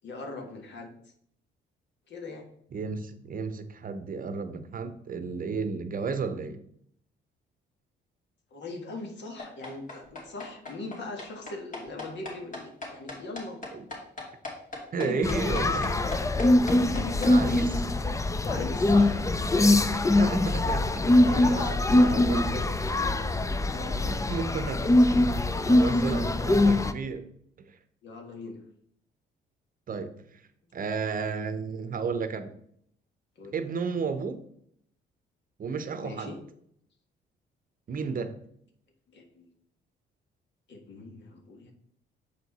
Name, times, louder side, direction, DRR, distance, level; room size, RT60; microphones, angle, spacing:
voice 1, 0.0-0.9 2.1-2.5 8.5-13.6 14.9-15.8 16.7-17.6 18.4-19.2 21.2-23.4 23.7-24.1 28.0-28.6 33.4-33.5 36.0-36.4 39.1-39.5 40.7-41.7, left 2 dB, 65° left, 3 dB, 1.7 m, -39 dB
voice 2, 2.7-6.6 13.7-13.8 14.9-16.0 17.2-17.7 19.9-22.5 24.1-25.4 25.7-27.3 27.6-27.8 29.9-30.4 30.7-32.5 33.5-34.5 35.6-36.3 37.9-38.4, right 5 dB, 45° right, 10 dB, 0.8 m, -33 dB
sound 1, 9.4-17.3, left 3 dB, 40° left, 2.5 m, -39 dB
sound 2, 15.2-26.9, left 2 dB, 15° left, 0.5 m, -23 dB
7.3 x 4.6 x 4.1 m, 0.69 s
cardioid pair, 90°, 20 cm